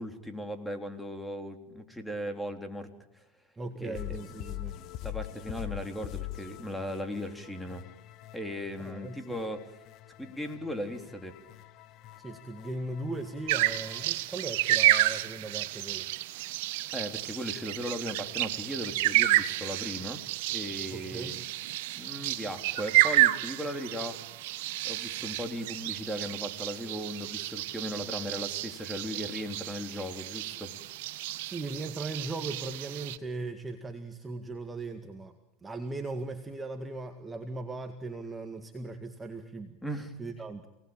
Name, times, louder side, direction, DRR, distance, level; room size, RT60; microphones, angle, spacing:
voice 1, 0.0-2.9 3.1-3.2 3.8-4.2 5.0-7.9 8.3-9.6 10.2-11.4 16.9-20.2 20.5-21.4 22.0-24.2 24.8-30.7 39.8-40.1, equal, 5° left, 6 dB, 3.5 m, -37 dB
voice 2, 3.6-4.8 8.8-9.5 12.2-16.1 20.9-21.4 31.4-35.4 35.6-39.8 40.2-40.7, right 2 dB, 15° right, 5 dB, 2.0 m, -38 dB
sound 1, 3.9-14.1, left 15 dB, 50° left, 1.0 m, -44 dB
sound 2, 13.5-33.2, right 16 dB, 70° right, 1.4 m, -30 dB
28.5 x 19.5 x 9.0 m, 0.95 s
supercardioid pair, 115°, 0 cm